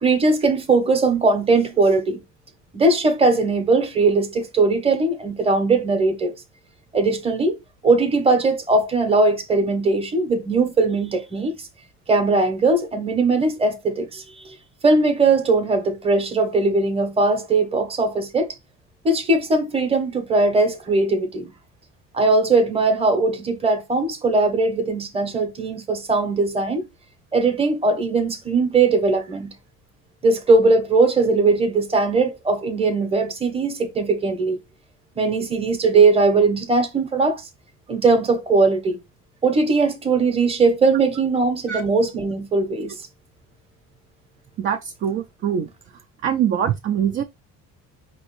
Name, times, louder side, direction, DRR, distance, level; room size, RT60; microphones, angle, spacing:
voice 1, 0.0-2.2 2.7-6.4 6.9-7.6 7.8-11.6 12.1-14.6 14.8-18.5 19.0-21.5 22.1-26.8 27.3-29.5 30.2-34.6 35.2-37.4 37.9-39.0 39.4-43.0, right 3 dB, 15° right, 0.9 m, -19 dB
voice 2, 44.6-45.7 46.2-47.2, right 9 dB, 40° right, 0.5 m, -23 dB
5.3 x 3.0 x 3.0 m
cardioid pair, 150°, 33 cm